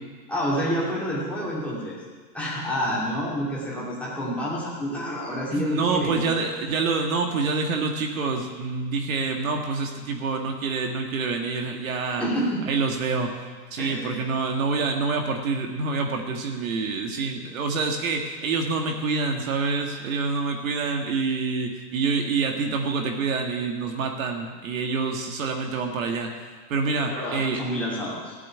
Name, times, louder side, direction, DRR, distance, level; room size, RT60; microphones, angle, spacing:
voice 1, 0.3-2.0 2.3-6.4 12.1-12.6 13.8-14.2 27.1-28.4, equal, 5° left, -7 dB, 2.7 m, -28 dB
voice 2, 5.5-12.3 12.7-13.4 13.7-26.4 26.7-27.6, right 4 dB, 55° right, 4 dB, 1.8 m, -27 dB
16.0 x 8.5 x 9.7 m, 1.5 s
supercardioid pair, 175°, 50 cm